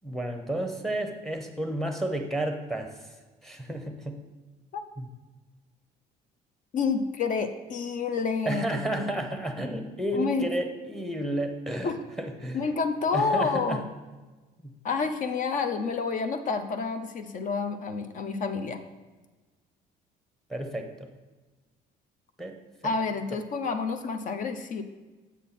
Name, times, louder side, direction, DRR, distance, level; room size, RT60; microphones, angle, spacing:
voice 1, 0.0-3.1 3.4-4.2 5.0-5.1 8.5-11.9 12.2-12.6 13.1-13.8 20.5-20.9 22.4-22.6, right 1 dB, ahead, 5 dB, 0.8 m, -31 dB
voice 2, 6.7-9.1 10.1-10.5 11.8-12.0 12.5-13.8 14.8-18.8 22.8-24.8, left 5 dB, 50° left, 8 dB, 0.6 m, -29 dB
7.2 x 5.5 x 4.2 m, 1.3 s
cardioid pair, 110°, 17 cm